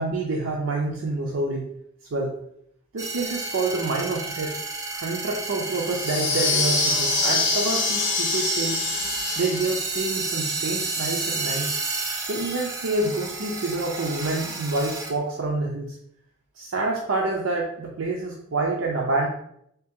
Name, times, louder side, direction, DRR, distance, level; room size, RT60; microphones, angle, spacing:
voice 1, 0.0-1.7 2.1-2.4 2.9-4.5 4.9-8.8 9.4-11.7 12.3-16.0 16.6-19.3, right 2 dB, 80° right, -1 dB, 0.5 m, -27 dB
sound 1, 3.0-15.1, right 3 dB, 15° right, 0.4 m, -31 dB
sound 2, 5.9-10.0, left 3 dB, 60° left, 0.8 m, -25 dB
3.6 x 2.8 x 3.6 m, 0.72 s
head